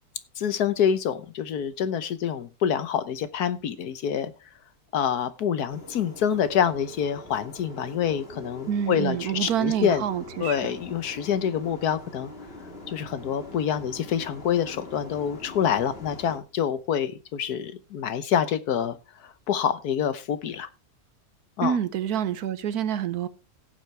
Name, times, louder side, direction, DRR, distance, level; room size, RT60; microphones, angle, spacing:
voice 1, 0.4-4.3 4.9-10.0 10.4-12.3 12.9-19.0 19.2-20.7 21.6-21.8, left 8 dB, 80° left, 1.5 m, -26 dB
sound 1, 5.7-16.4, left 2 dB, 40° left, 2.5 m, -43 dB
voice 2, 8.7-10.6 21.6-23.3, right 9 dB, 80° right, 1.4 m, -27 dB
17.0 x 7.5 x 3.3 m
omnidirectional pair, 1.6 m